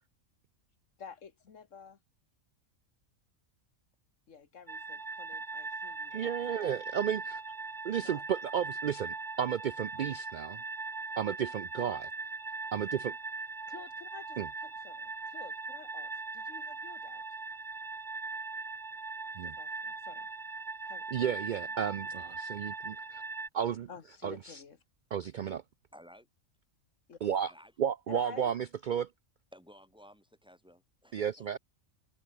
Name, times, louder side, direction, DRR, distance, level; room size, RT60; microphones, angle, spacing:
voice 1, 1.0-2.0 4.3-6.8 7.9-8.2 13.7-17.2 19.4-20.3 20.8-21.7 23.9-24.8 27.1-27.2 28.1-28.5, left 6 dB, 65° left, 1.8 m, -51 dB
sound 1, 4.7-23.5, right 4 dB, 25° right, 0.6 m, -40 dB
voice 2, 6.1-7.4 7.8-10.6 11.2-12.1 12.7-13.2 14.4-14.5 19.4-19.6 21.1-23.2 23.5-23.9 24.2-24.6 25.1-25.6 27.2-27.5 27.8-29.1 31.1-31.6, right 8 dB, 90° right, 0.4 m, -33 dB
voice 3, 25.9-26.3 27.5-27.7 29.5-31.5, equal, 5° right, 4.5 m, -56 dB
omnidirectional pair, 1.4 m